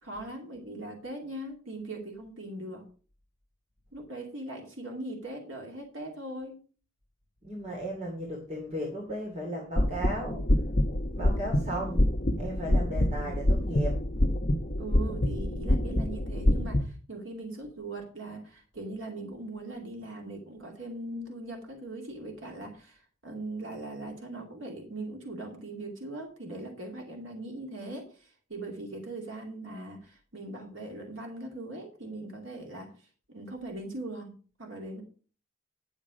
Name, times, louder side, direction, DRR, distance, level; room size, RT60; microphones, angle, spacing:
voice 1, 0.0-2.8 3.9-6.6 14.8-34.3 34.6-35.0, right 2 dB, 85° right, 1 dB, 2.4 m, -40 dB
voice 2, 7.4-10.4 11.1-12.1 12.4-14.0, right 1 dB, 35° right, -2 dB, 2.7 m, -35 dB
sound 1, 9.8-16.8, left 1 dB, 40° left, 1.0 m, -26 dB
11.0 x 7.4 x 5.0 m, 0.40 s
head